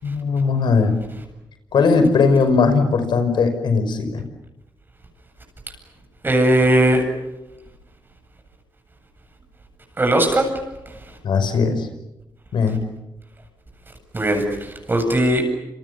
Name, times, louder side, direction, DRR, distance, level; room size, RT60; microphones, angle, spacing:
voice 1, 0.0-1.0 1.7-4.2 11.2-11.9 12.5-12.8, left 4 dB, 70° left, 9 dB, 5.7 m, -18 dB
voice 2, 6.2-7.0 10.0-10.5 14.1-15.4, right 1 dB, 25° right, 3 dB, 7.9 m, -18 dB
29.5 x 28.0 x 7.1 m, 0.94 s
cardioid pair, 115°, 8 cm